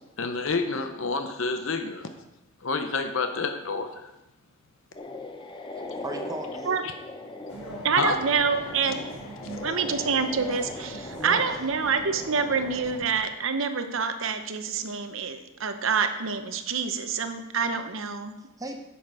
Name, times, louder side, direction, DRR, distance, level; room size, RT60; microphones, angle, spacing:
voice 1, 0.2-2.1 2.6-4.0 6.8-6.9 7.9-8.2 9.5-9.6, left 4 dB, 60° left, 7 dB, 0.7 m, -28 dB
sound 1, 4.9-13.0, left 2 dB, 20° left, 0.6 m, -40 dB
voice 2, 5.6-6.9 11.1-11.6 18.4-18.8, right 1 dB, 15° right, 5 dB, 0.7 m, -38 dB
sound 2, 7.5-13.2, right 1 dB, 85° left, 3.9 m, -42 dB
voice 3, 7.8-9.0 9.6-18.3, right 5 dB, 60° right, 8 dB, 0.8 m, -27 dB
10.0 x 7.1 x 4.8 m, 0.95 s
head